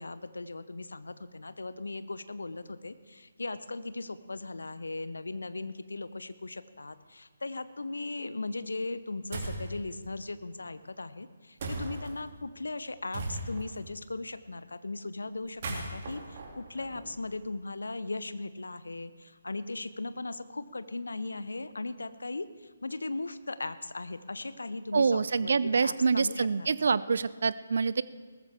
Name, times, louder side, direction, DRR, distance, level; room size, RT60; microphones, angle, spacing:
voice 1, 0.0-26.9, left 2 dB, 70° left, 14 dB, 0.7 m, -38 dB
sound 1, 9.3-9.7 11.6-12.1 13.1-13.8 15.4-17.4, right 2 dB, 40° right, 2.7 m, -37 dB
voice 2, 24.9-28.0, right 5 dB, 55° right, 17 dB, 0.4 m, -26 dB
18.5 x 14.0 x 3.6 m, 1.5 s
figure-of-eight pair, 140°, 0 cm